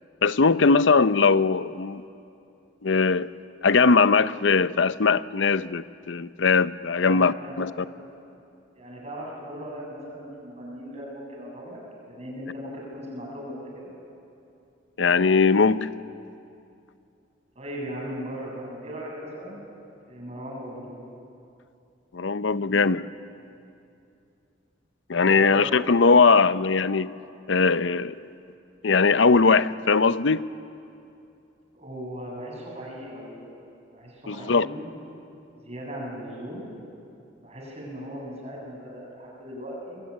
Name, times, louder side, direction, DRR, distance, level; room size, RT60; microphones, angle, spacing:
voice 1, 0.2-2.0 2.8-3.3 3.6-7.7 15.0-15.9 22.1-23.0 25.1-27.1 27.5-28.2 28.8-30.5 34.3-34.7, left 4 dB, 75° left, 14 dB, 0.7 m, -20 dB
voice 2, 7.0-7.7 8.0-8.1 8.7-11.8 12.1-13.9 17.6-19.6 20.1-20.9 22.5-22.9 25.2-25.9 31.7-33.3 33.9-34.9 35.6-36.7 37.4-40.0, equal, 35° right, -2 dB, 7.6 m, -38 dB
23.5 x 23.0 x 9.8 m, 2.6 s
head